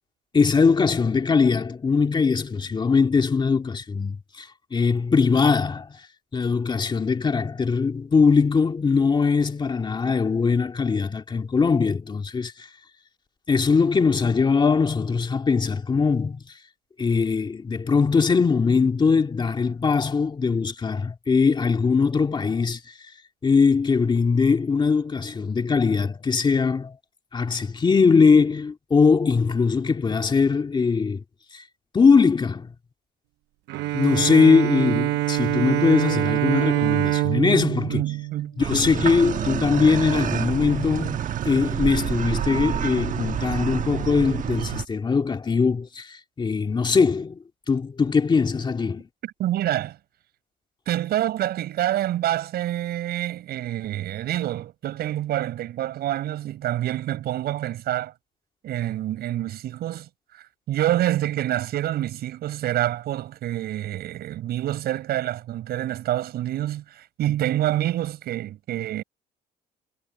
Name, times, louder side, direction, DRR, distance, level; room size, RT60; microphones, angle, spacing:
voice 1, 0.3-6.0 6.3-12.7 13.5-16.4 17.0-22.9 23.4-27.0 27.3-31.2 31.5-31.6 31.9-32.7 33.9-38.0 38.6-47.4 47.7-49.0, left 5 dB, 25° left, 2.3 m, -21 dB
Bowed string instrument, 33.7-39.1, right 17 dB, 85° right, 0.8 m, -25 dB
voice 2, 37.9-38.6 49.2-50.0 50.9-58.1 58.6-60.1 60.3-69.0, right 13 dB, 70° right, 7.7 m, -27 dB
sound 1, 38.6-44.8, right 9 dB, 50° right, 1.3 m, -28 dB
cardioid pair, 110°, 17 cm